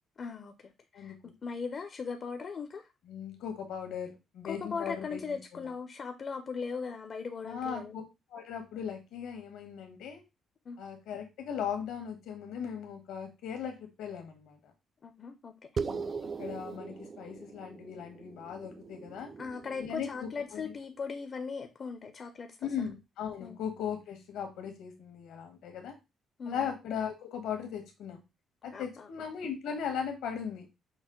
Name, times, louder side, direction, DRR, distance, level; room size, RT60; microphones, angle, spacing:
voice 1, 0.2-2.8 4.5-8.0 10.7-10.8 15.0-15.5 19.4-22.5 23.4-23.6 26.4-26.7 28.7-29.1, left 5 dB, 45° left, 0.6 m, -39 dB
voice 2, 0.9-1.3 3.1-5.7 7.4-8.0 8.3-10.2 10.8-14.6 15.8-16.1 16.4-19.3 19.8-20.7 22.6-25.9 26.5-28.2 28.6-30.7, left 7 dB, 85° left, 1.5 m, -38 dB
sound 1, 15.8-20.5, right 5 dB, 40° right, 0.3 m, -40 dB
6.3 x 2.1 x 3.8 m
cardioid pair, 90°, 0 cm